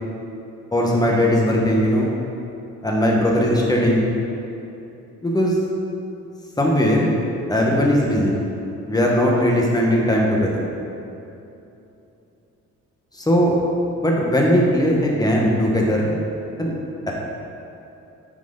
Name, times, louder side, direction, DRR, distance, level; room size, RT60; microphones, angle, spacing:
voice 1, 0.7-2.1 2.8-4.0 5.2-5.6 6.6-7.1 7.5-8.4 8.9-10.6 13.2-13.5 14.0-16.1 16.6-16.7 17.1-17.2, equal, 15° left, -2 dB, 1.5 m, -19 dB
9.2 x 4.7 x 4.1 m, 2.8 s
cardioid pair, 90°, 30 cm